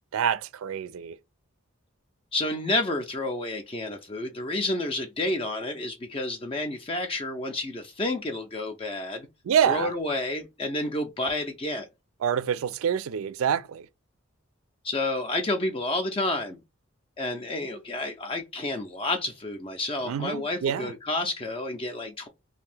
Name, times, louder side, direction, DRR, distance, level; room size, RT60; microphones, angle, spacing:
voice 1, 0.1-1.2 9.4-9.9 12.2-13.9 20.0-20.9, right 8 dB, 85° right, 0.3 m, -26 dB
voice 2, 2.3-9.3 9.7-11.9 14.8-16.6 17.2-22.3, left 2 dB, 25° left, 0.4 m, -30 dB
2.8 x 2.5 x 3.3 m
head